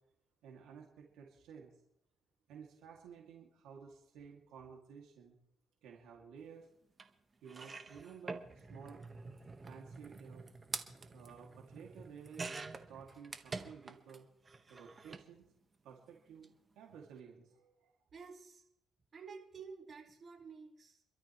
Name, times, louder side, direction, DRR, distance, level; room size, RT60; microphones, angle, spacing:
voice 1, 0.4-1.7 2.5-5.3 5.8-6.7 7.4-9.0 9.6-10.5 11.1-12.5 12.9-14.3 14.7-15.5 15.8-16.5 16.8-17.9, right 7 dB, 90° right, -1 dB, 2.4 m, -53 dB
sound 1, 7.0-7.1 7.5-14.2 14.5-15.3 16.3-16.5 16.7-16.8, right 3 dB, 30° right, 1.4 m, -47 dB
voice 2, 18.1-18.6 19.1-21.0, right 5 dB, 45° right, -1 dB, 4.4 m, -51 dB
27.5 x 12.5 x 3.1 m, 0.76 s
cardioid pair, 85°, 0 cm